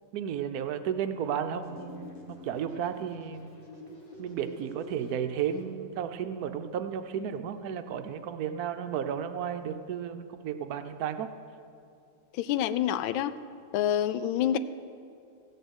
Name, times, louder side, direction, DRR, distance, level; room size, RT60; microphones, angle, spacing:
voice 1, 0.1-3.5 4.2-11.3, right 8 dB, 70° right, 9 dB, 0.9 m, -33 dB
sound 1, 1.6-5.6, left 1 dB, 30° left, 1.9 m, -47 dB
voice 2, 12.3-13.3 13.7-14.6, left 10 dB, 80° left, 14 dB, 1.3 m, -27 dB
15.0 x 6.7 x 8.0 m, 2.5 s
omnidirectional pair, 2.2 m